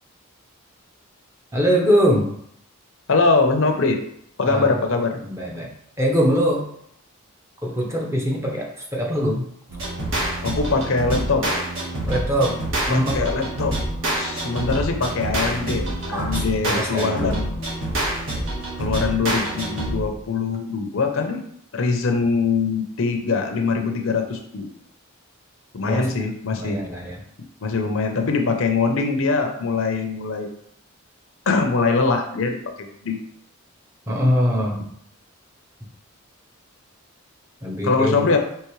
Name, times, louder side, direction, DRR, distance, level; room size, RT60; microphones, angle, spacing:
voice 1, 1.5-2.3 4.5-4.7 5.2-5.7 6.0-6.7 7.6-9.5 12.1-12.6 12.9-13.3 16.1-17.4 25.9-26.1 26.5-27.2 34.1-34.8 37.6-38.3, equal, 15° right, -1 dB, 0.6 m, -22 dB
voice 2, 3.1-4.0 4.4-5.2 10.4-11.6 12.9-13.7 14.2-17.5 18.8-21.4 21.7-24.7 25.7-26.8 27.6-30.5 31.5-33.2 37.8-38.4, left 4 dB, 65° left, 4 dB, 0.6 m, -22 dB
sound 1, 9.7-20.2, right 1 dB, 65° right, 1.3 m, -27 dB
4.6 x 3.0 x 3.1 m, 0.67 s
head